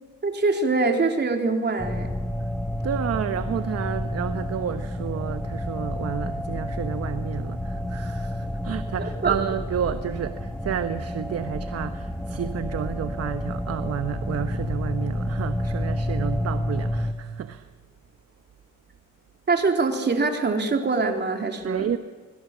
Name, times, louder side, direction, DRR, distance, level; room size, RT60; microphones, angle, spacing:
voice 1, 0.2-2.1 9.0-9.3 19.5-21.9, right 3 dB, 35° right, 3.6 m, -24 dB
sound 1, 1.8-17.1, left 1 dB, 5° left, 1.8 m, -30 dB
voice 2, 2.8-17.7 21.6-22.0, right 9 dB, 55° right, 1.1 m, -31 dB
26.0 x 20.5 x 7.4 m
cardioid pair, 90°, 30 cm